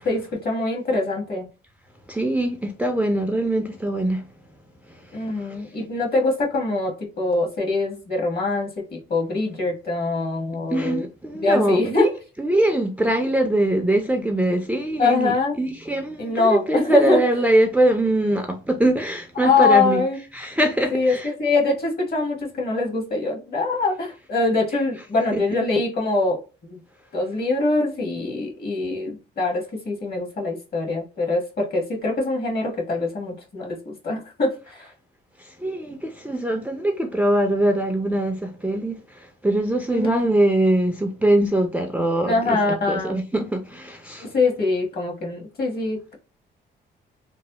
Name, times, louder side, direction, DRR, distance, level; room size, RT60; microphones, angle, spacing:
voice 1, 0.0-1.5 5.1-8.7 9.1-11.1 11.3-12.0 15.0-15.6 16.2-17.2 19.4-20.2 20.9-26.8 27.1-34.9 39.9-40.2 42.2-43.2 44.2-46.1, left 3 dB, 50° left, 1.4 m, -23 dB
voice 2, 2.1-4.2 10.7-12.1 12.4-20.0 20.3-21.3 25.3-25.4 35.6-38.9 39.4-44.2, right 1 dB, 5° right, 0.4 m, -22 dB
3.1 x 2.0 x 2.8 m
cardioid pair, 90°, 20 cm